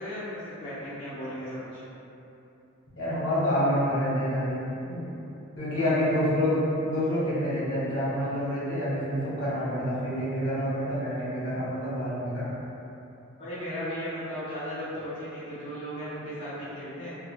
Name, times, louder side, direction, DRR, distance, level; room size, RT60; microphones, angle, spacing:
voice 1, 0.0-1.8 5.8-6.0 13.4-17.2, equal, 25° left, -14 dB, 0.6 m, -36 dB
voice 2, 3.0-4.6 4.9-5.1 5.6-12.5, equal, 75° left, -10 dB, 0.9 m, -27 dB
2.4 x 2.0 x 2.7 m, 2.8 s
head